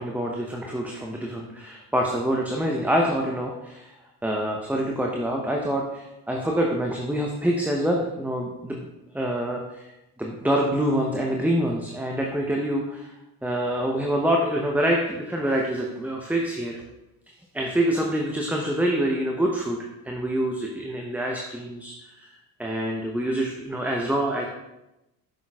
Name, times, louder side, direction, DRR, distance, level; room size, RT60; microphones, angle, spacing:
voice 1, 0.0-3.9 4.2-8.9 9.1-9.9 10.2-13.1 13.4-16.8 17.5-22.3 22.6-24.4, right 1 dB, 5° right, 0 dB, 0.8 m, -26 dB
7.1 x 6.4 x 2.3 m, 0.95 s
hypercardioid pair, 55°, 43 cm